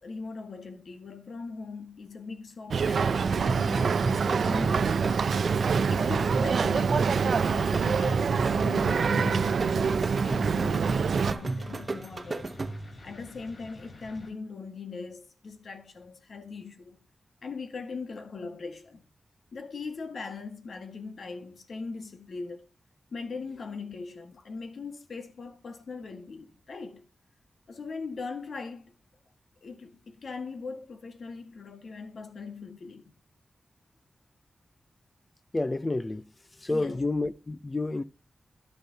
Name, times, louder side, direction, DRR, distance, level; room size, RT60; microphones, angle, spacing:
voice 1, 0.0-5.1 5.9-12.6 13.0-17.0 17.4-19.0 19.5-22.7 23.1-27.1 27.7-28.9 29.6-33.1 36.7-37.1, left 4 dB, 70° left, 1.8 m, -40 dB
Boat Water vehicle, 2.7-11.3, right 6 dB, 80° right, 0.5 m, -25 dB
sound 1, 3.5-13.0, right 2 dB, 35° right, 1.0 m, -34 dB
sound 2, 9.9-14.3, left 2 dB, 50° left, 3.9 m, -49 dB
voice 2, 35.5-36.2 36.6-38.0, left 2 dB, 25° left, 0.6 m, -29 dB
12.0 x 11.5 x 2.8 m
wide cardioid pair, 135°, 0 cm